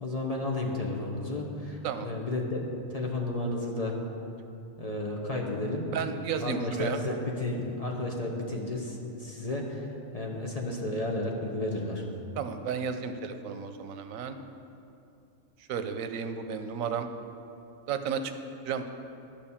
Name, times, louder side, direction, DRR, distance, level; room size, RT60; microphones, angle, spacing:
voice 1, 0.0-4.0 4.8-5.9 6.4-12.1, left 2 dB, 30° left, 0 dB, 1.0 m, -32 dB
voice 2, 5.9-7.0 12.4-14.4 15.7-17.1 17.9-18.3 18.7-18.9, right 6 dB, 85° right, 8 dB, 1.1 m, -33 dB
12.5 x 5.2 x 7.1 m, 2.7 s
omnidirectional pair, 1.4 m